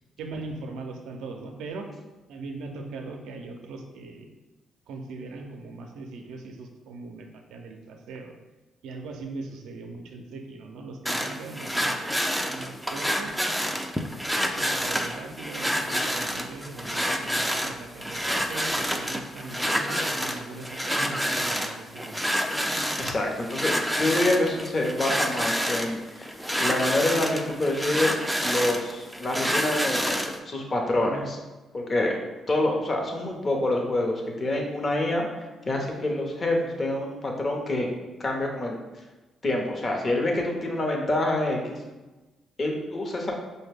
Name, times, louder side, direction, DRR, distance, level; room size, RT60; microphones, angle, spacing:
voice 1, 0.2-1.9 2.3-4.3 4.9-8.4 8.8-12.1 12.5-13.7 14.5-22.2 31.0-31.3, right 3 dB, 80° right, 4 dB, 0.4 m, -40 dB
sound 1, 11.1-30.4, equal, ahead, 0.4 m, -28 dB
voice 2, 22.7-28.1 28.4-31.4 31.7-32.2 32.5-35.3 35.7-37.9 38.2-38.8 39.4-41.8 42.6-43.3, left 1 dB, 40° left, 1 dB, 0.8 m, -27 dB
4.9 x 2.1 x 3.3 m, 1.1 s
cardioid pair, 80°, 0 cm